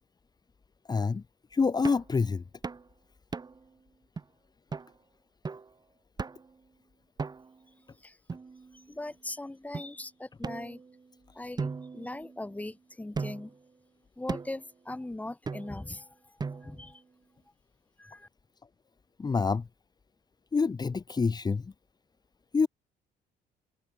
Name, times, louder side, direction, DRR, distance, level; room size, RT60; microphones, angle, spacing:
voice 1, 0.9-1.2 1.5-2.4 19.2-19.6 20.5-21.7 22.5-22.7, left 4 dB, 25° left, 1.7 m, -26 dB
sound 1, 1.8-2.1 2.6-2.9 3.3-3.7 4.2-4.3 4.7-4.9 5.4-5.7 6.2-6.5 7.2-7.6 8.3-9.0 9.7-9.9 10.4-11.1 11.6-12.6 13.1-13.6 14.3-14.7 15.5-15.9 16.4-16.9, right 4 dB, 25° right, 2.0 m, -38 dB
voice 2, 8.9-10.8 11.4-11.7 11.9-13.5 14.2-16.0 16.6-17.0 18.0-18.3, left 2 dB, 10° left, 2.2 m, -39 dB
cardioid pair, 110°, 17 cm